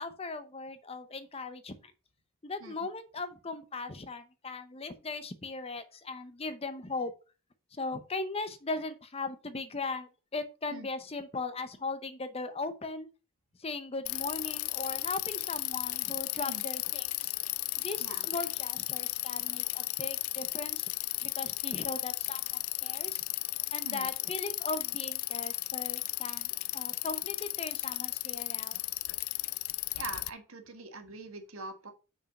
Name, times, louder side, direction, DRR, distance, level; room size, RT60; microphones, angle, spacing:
voice 1, 0.0-1.9 2.4-7.1 7.7-13.1 13.6-17.3 17.8-20.9 21.2-23.2 23.7-28.8, left 3 dB, 25° left, 0.7 m, -38 dB
Bicycle, 14.1-30.3, left 20 dB, 75° left, 0.3 m, -35 dB
voice 2, 29.9-31.9, right 3 dB, 75° right, 1.6 m, -43 dB
6.2 x 4.9 x 5.4 m
head